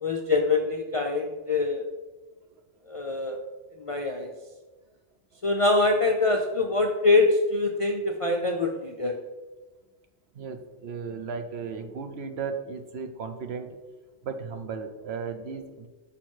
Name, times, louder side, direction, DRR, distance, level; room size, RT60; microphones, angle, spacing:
voice 1, 0.0-1.8 2.9-3.4 3.8-4.3 5.4-9.2, left 3 dB, 50° left, 2 dB, 0.4 m, -24 dB
voice 2, 10.3-13.7 14.2-15.9, right 5 dB, 65° right, 6 dB, 0.9 m, -35 dB
6.3 x 5.8 x 4.4 m, 1.2 s
omnidirectional pair, 1.2 m